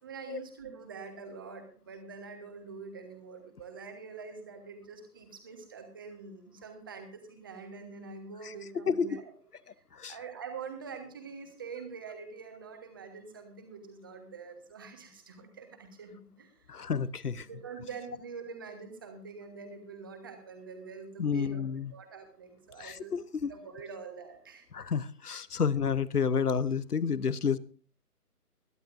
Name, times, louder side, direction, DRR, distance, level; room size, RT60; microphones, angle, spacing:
voice 1, 0.0-9.2 10.1-16.8 17.4-21.6 21.9-23.1 23.5-24.7, right 5 dB, 15° right, 6 dB, 1.3 m, -45 dB
voice 2, 16.7-17.5 21.2-21.9 22.8-23.5 24.7-27.6, left 6 dB, 70° left, 18 dB, 0.9 m, -30 dB
21.5 x 11.0 x 2.6 m, 0.42 s
figure-of-eight pair, 155°, 47 cm